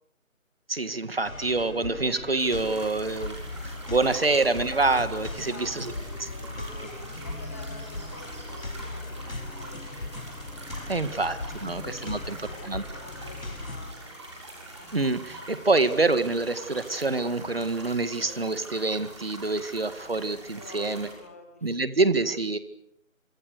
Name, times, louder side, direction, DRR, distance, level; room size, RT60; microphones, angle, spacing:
voice 1, 0.7-5.9 6.2-6.3 10.9-12.4 12.6-12.8 14.9-21.1 21.6-22.6, right 3 dB, 45° right, 12 dB, 2.0 m, -26 dB
sound 1, 1.2-13.9, left 2 dB, 85° left, 5.9 m, -38 dB
sound 2, 2.4-21.1, right 2 dB, 20° right, 6.7 m, -44 dB
voice 2, 5.3-10.1 10.9-11.1 11.5-14.1 20.4-22.1, left 2 dB, 10° left, 3 dB, 2.1 m, -48 dB
29.5 x 26.0 x 6.7 m, 0.73 s
figure-of-eight pair, 175°, 41 cm